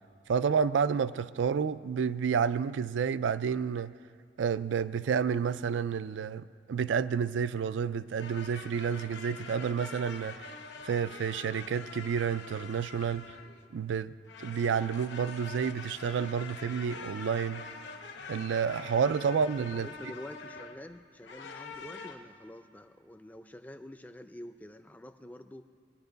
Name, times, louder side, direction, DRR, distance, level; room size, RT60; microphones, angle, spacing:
voice 1, 0.3-3.9 4.4-10.5 10.8-13.3 13.7-14.1 14.4-17.6 18.3-19.9, right 6 dB, 85° right, 0.4 m, -30 dB
sound 1, 8.2-13.7 14.2-20.8 21.2-22.1, left 4 dB, 75° left, 1.0 m, -45 dB
voice 2, 19.7-25.7, left 1 dB, 10° left, 0.4 m, -47 dB
20.5 x 11.0 x 4.0 m
head